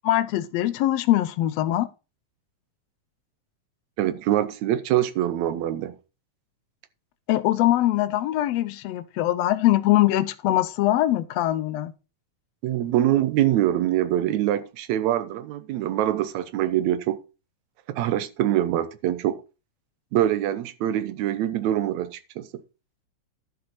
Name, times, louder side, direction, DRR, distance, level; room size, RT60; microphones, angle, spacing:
voice 1, 0.0-1.9 7.3-11.9, left 14 dB, 75° left, 1.6 m, -22 dB
voice 2, 4.0-6.0 12.6-17.2 17.9-19.4 20.1-22.5, right 12 dB, 75° right, 2.1 m, -24 dB
11.5 x 6.6 x 4.1 m
omnidirectional pair, 3.3 m